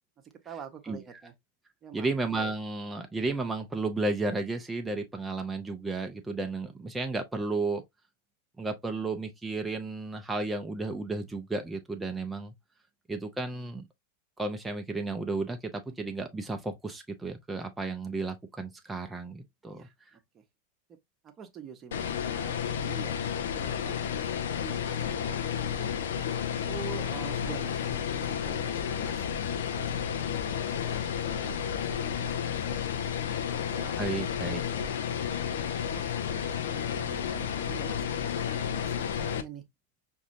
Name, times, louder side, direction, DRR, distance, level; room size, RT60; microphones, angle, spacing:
voice 1, 0.2-1.3 1.8-2.1 19.7-19.9 20.3-20.4 21.2-24.0 24.6-25.9 26.7-32.8 33.5-36.0 36.7-39.6, right 7 dB, 25° right, 0.9 m, -47 dB
voice 2, 1.9-7.8 8.6-12.5 13.1-13.9 14.4-19.9 34.0-34.6, right 3 dB, 10° right, 0.6 m, -33 dB
sound 1, 21.9-39.4, left 8 dB, 60° left, 0.6 m, -31 dB
6.0 x 2.7 x 2.5 m
figure-of-eight pair, 90°, 0 cm